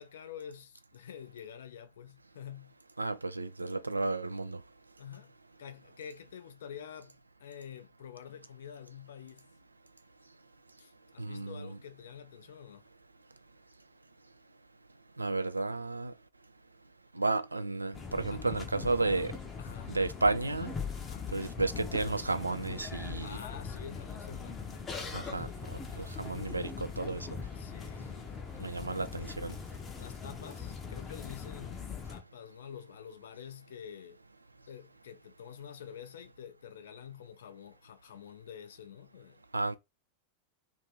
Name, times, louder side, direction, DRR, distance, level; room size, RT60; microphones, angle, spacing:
voice 1, 0.0-2.7 5.0-5.3 5.6-9.5 10.8-12.9 18.3-18.5 19.6-20.0 21.0-21.3 23.2-25.5 27.6-28.6 30.0-34.2 34.7-39.4, left 8 dB, 60° left, 0.4 m, -48 dB
voice 2, 3.0-4.6 11.2-11.8 15.2-16.1 17.2-19.3 19.9-20.7 21.3-23.4 25.1-25.5 26.0-26.7 27.0-27.3 28.6-29.6 39.5-39.7, right 3 dB, 80° right, 0.3 m, -32 dB
sound 1, 17.9-32.2, left 5 dB, 20° left, 0.6 m, -41 dB
2.6 x 2.5 x 3.2 m
figure-of-eight pair, 90°, 0 cm